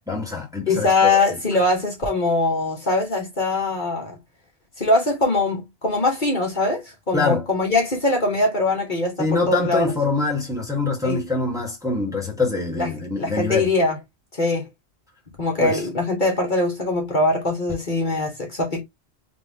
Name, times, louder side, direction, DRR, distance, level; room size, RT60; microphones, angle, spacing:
voice 1, 0.1-1.2 7.1-7.4 9.2-13.7 15.6-15.8, left 3 dB, 5° right, 1.5 m, -24 dB
voice 2, 0.7-4.1 4.8-9.9 11.0-11.2 12.8-12.9 13.2-14.0 14.4-14.7 15.4-18.8, left 2 dB, 45° left, 1.4 m, -22 dB
3.7 x 3.1 x 3.5 m
omnidirectional pair, 1.2 m